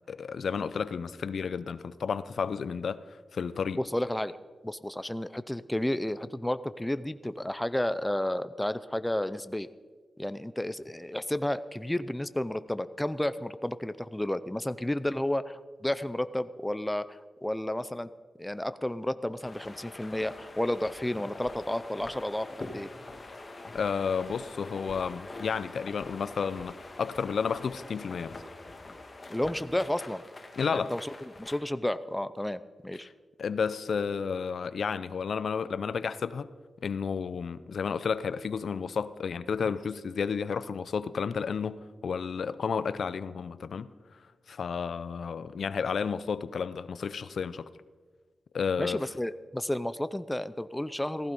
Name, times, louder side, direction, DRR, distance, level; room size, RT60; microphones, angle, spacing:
voice 1, 0.1-3.0 3.3-3.8 23.7-28.4 30.6-30.9 33.0-33.1 33.4-36.5 36.8-43.9 44.5-47.7 48.5-49.0, left 6 dB, 70° left, 0.5 m, -32 dB
voice 2, 3.8-4.4 4.6-9.7 10.2-18.1 18.4-22.9 29.3-30.2 30.7-33.1 48.8-51.3, left 1 dB, 10° left, 0.5 m, -32 dB
sound 1, 19.4-31.6, left 2 dB, 30° left, 1.7 m, -45 dB
15.5 x 15.0 x 5.3 m
wide cardioid pair, 130°, 0 cm